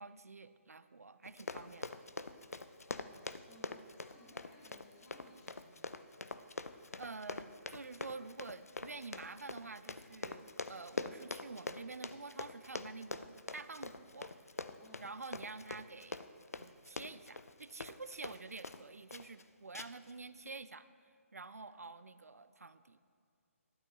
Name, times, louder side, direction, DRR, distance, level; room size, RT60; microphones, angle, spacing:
voice 1, 0.0-2.0 6.6-6.7 7.0-14.4 15.0-16.2 16.6-20.9 21.3-23.0, right 3 dB, 85° right, 14 dB, 0.4 m, -48 dB
Run, 1.2-18.8 19.1-19.4 19.7-20.1 20.5-20.6, left 3 dB, 90° left, 0.4 m, -44 dB
voice 2, 2.9-6.2 14.8-15.1, left 1 dB, 25° left, -3 dB, 1.5 m, -61 dB
12.0 x 10.5 x 2.3 m, 2.5 s
figure-of-eight pair, 140°, 8 cm